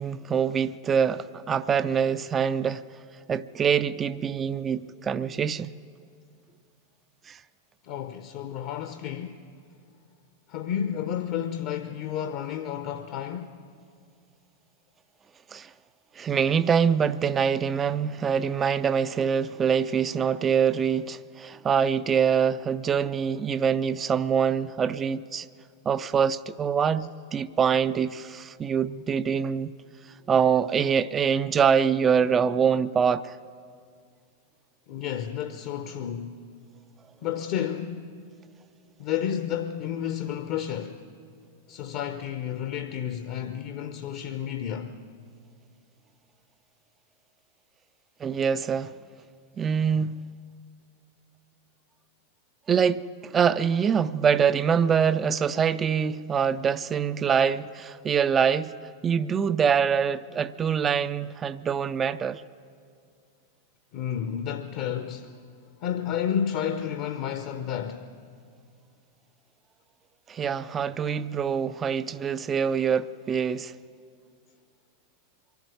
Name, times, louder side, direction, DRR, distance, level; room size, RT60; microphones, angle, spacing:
voice 1, 0.0-2.8 3.3-5.7 7.3-7.4 15.5-15.7 16.2-25.5 25.9-29.7 30.3-33.4 48.2-48.9 49.6-50.1 52.7-58.7 59.0-62.4 70.3-73.7, right 7 dB, 20° right, 0.4 m, -24 dB
voice 2, 7.8-9.5 10.5-13.6 34.9-36.5 37.2-38.2 39.0-41.0 41.7-45.0 63.9-65.5 65.8-68.1, left 9 dB, 45° left, 0.8 m, -31 dB
23.5 x 11.5 x 9.4 m
figure-of-eight pair, 90°, 0 cm